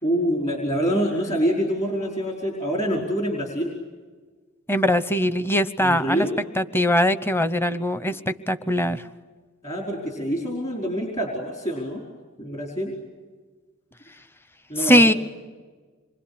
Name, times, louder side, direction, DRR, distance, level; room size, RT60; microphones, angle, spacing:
voice 1, 0.0-3.7 5.8-6.3 9.6-12.0 12.4-12.9 14.7-15.2, equal, 35° left, -1 dB, 4.9 m, -26 dB
voice 2, 4.7-6.3 6.6-9.1 14.8-15.1, equal, 10° left, 13 dB, 0.9 m, -21 dB
27.5 x 24.0 x 8.8 m, 1.4 s
head